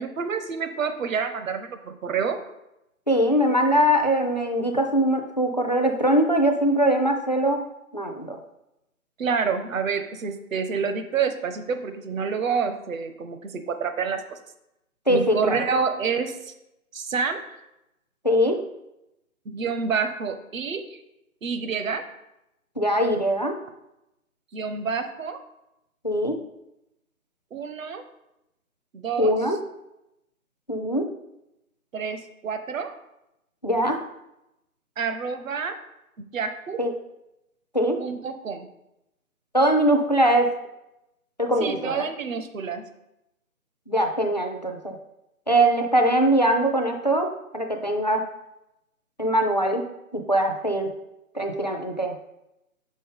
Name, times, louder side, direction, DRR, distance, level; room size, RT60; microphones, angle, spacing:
voice 1, 0.0-2.4 9.2-14.4 15.1-16.5 16.9-17.6 19.5-21.0 21.4-22.0 24.5-25.4 27.5-28.0 28.9-29.3 31.9-32.9 35.0-35.8 36.2-36.8 38.0-38.7 41.6-42.8, right 5 dB, 65° right, 8 dB, 0.9 m, -28 dB
voice 2, 3.1-7.6 7.9-8.4 15.1-15.6 18.2-18.6 22.8-23.6 26.0-26.4 29.2-29.6 30.7-31.1 33.6-34.0 36.8-36.9 37.7-38.0 39.5-40.5 41.4-42.1 43.9-44.9 45.5-48.2 49.2-49.8 50.1-50.9 51.3-52.1, right 1 dB, 35° left, 4 dB, 0.4 m, -22 dB
5.8 x 5.3 x 3.8 m, 0.88 s
figure-of-eight pair, 150°, 43 cm